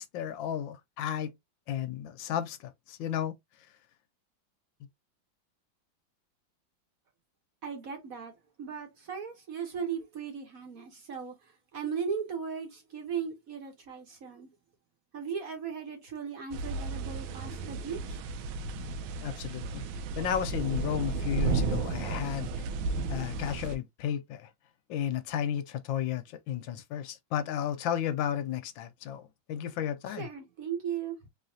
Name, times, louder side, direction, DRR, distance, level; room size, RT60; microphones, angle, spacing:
voice 1, 0.0-1.3 1.7-3.4 19.2-19.8 20.2-22.5 23.1-24.5 24.9-30.3, left 9 dB, 80° left, 1.3 m, -33 dB
voice 2, 7.6-8.3 8.6-11.3 11.7-14.5 15.1-18.2 30.2-31.2, right 6 dB, 50° right, 1.2 m, -37 dB
sound 1, 16.5-23.8, right 4 dB, 85° right, 1.4 m, -33 dB
3.9 x 3.2 x 2.7 m
omnidirectional pair, 2.1 m